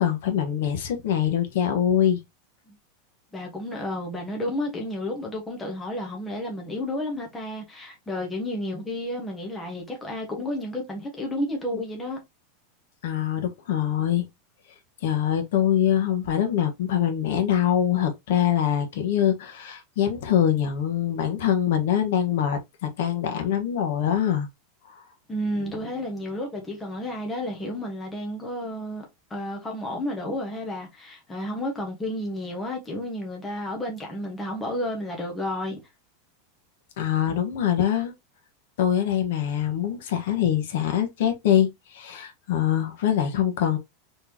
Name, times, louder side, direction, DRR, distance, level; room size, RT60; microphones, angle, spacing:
voice 1, 0.0-2.2 13.0-14.3 15.0-24.5 24.9-25.0 37.0-38.1 38.8-43.8, left 10 dB, 65° left, 1.2 m, -24 dB
voice 2, 3.3-12.2 25.3-35.8, left 1 dB, 10° left, 1.1 m, -31 dB
4.0 x 3.3 x 2.8 m
supercardioid pair, 175°, 0 cm